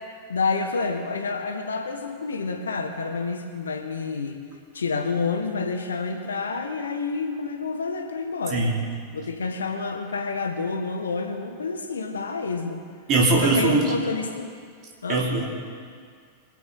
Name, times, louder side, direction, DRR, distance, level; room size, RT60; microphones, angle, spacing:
voice 1, 0.3-4.4 4.7-8.7 9.1-12.8 13.4-14.5 15.0-15.2, left 4 dB, 70° left, 5 dB, 1.4 m, -28 dB
voice 2, 8.5-8.8 13.1-13.8 15.1-15.5, right 3 dB, 35° right, -2 dB, 3.0 m, -21 dB
24.5 x 8.4 x 4.0 m, 2.1 s
figure-of-eight pair, 90°, 0 cm